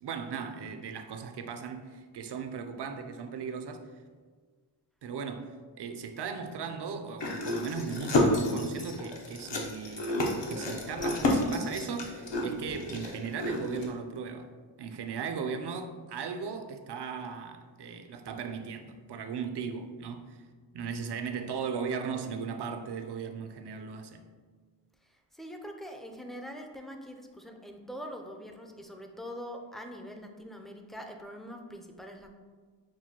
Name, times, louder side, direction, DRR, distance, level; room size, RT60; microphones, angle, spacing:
voice 1, 0.0-3.9 5.0-14.5 14.8-20.4 20.7-24.2, right 6 dB, 60° right, 0.5 m, -37 dB
sound 1, 7.2-13.9, left 1 dB, 70° left, 0.8 m, -30 dB
voice 2, 25.3-32.3, equal, ahead, 0.4 m, -43 dB
6.0 x 2.2 x 2.8 m
cardioid pair, 50°, 46 cm